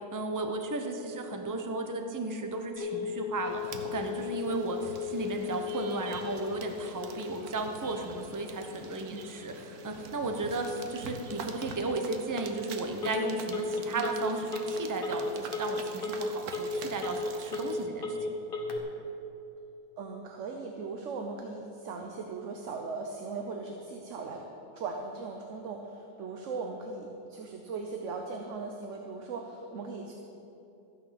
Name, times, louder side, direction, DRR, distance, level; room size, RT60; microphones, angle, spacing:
voice 1, 0.1-18.2, right 2 dB, 15° right, 4 dB, 0.7 m, -34 dB
Telephone, 2.8-18.8, left 5 dB, 35° left, 1.4 m, -37 dB
sound 1, 3.4-17.8, right 4 dB, 80° right, 1.4 m, -45 dB
voice 2, 9.1-9.4 13.9-14.1 20.0-24.4 24.7-30.1, right 4 dB, 60° right, 2 dB, 1.1 m, -39 dB
14.0 x 9.4 x 5.9 m, 2.9 s
omnidirectional pair, 1.6 m